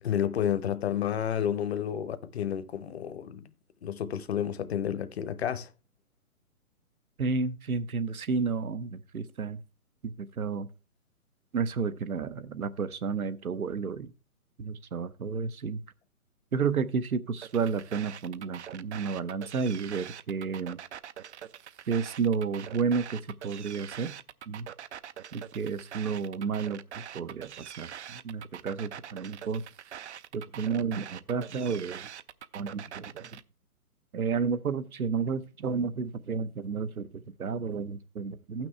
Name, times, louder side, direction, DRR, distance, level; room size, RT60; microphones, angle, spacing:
voice 1, 0.0-3.4 3.8-5.7, left 9 dB, 45° left, 0.8 m, -30 dB
voice 2, 7.2-9.6 10.0-10.7 11.5-14.1 14.6-15.8 16.5-20.8 21.9-24.1 24.5-24.7 25.3-29.6 30.3-32.1 32.5-33.4 34.1-38.7, right 5 dB, 75° right, 0.9 m, -31 dB
sound 1, 17.4-33.4, right 9 dB, 50° right, 0.5 m, -44 dB
14.5 x 6.1 x 3.2 m
figure-of-eight pair, 135°, 43 cm